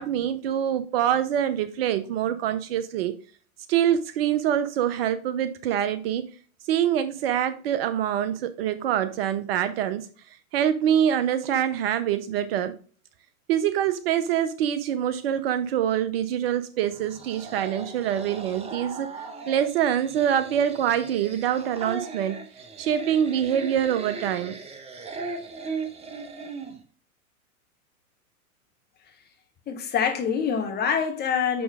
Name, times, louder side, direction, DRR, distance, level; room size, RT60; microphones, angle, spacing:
voice 1, 0.0-3.1 3.7-6.3 6.7-10.1 10.5-12.7 13.5-19.1 19.5-22.4 22.8-24.6, right 10 dB, 45° right, 0.6 m, -25 dB
sound 1, 16.8-26.8, right 4 dB, 15° right, 0.8 m, -38 dB
voice 2, 29.7-31.6, left 7 dB, 20° left, 1.3 m, -25 dB
6.1 x 6.0 x 3.5 m
hypercardioid pair, 110°, 44 cm